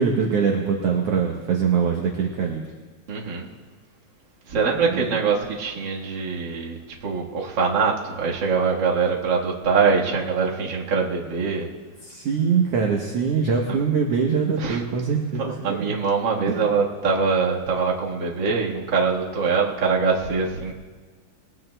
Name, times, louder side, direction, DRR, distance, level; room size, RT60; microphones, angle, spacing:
voice 1, 0.0-2.6 4.9-5.2 12.0-15.8 16.5-16.7, right 6 dB, 65° right, 1 dB, 1.7 m, -23 dB
voice 2, 3.1-3.5 4.5-11.7 13.7-13.8 14.6-14.8 15.4-20.7, right 5 dB, 45° right, -3 dB, 1.7 m, -23 dB
21.0 x 18.0 x 2.2 m, 1.4 s
omnidirectional pair, 3.6 m